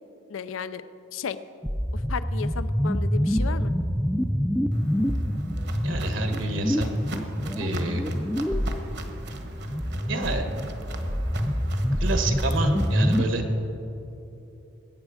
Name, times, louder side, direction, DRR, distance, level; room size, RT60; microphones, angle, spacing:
voice 1, 0.3-0.8 1.1-1.4 1.9-3.7, left 6 dB, 85° left, 14 dB, 0.5 m, -34 dB
sound 1, 1.6-13.2, equal, ahead, 0.4 m, -26 dB
Walk footsteps, 4.7-13.2, right 2 dB, 55° right, 1.1 m, -40 dB
voice 2, 5.8-6.9 7.6-8.0 10.1-10.5 12.0-13.4, right 2 dB, 75° right, 5 dB, 1.4 m, -28 dB
20.5 x 8.9 x 4.9 m, 2.9 s
head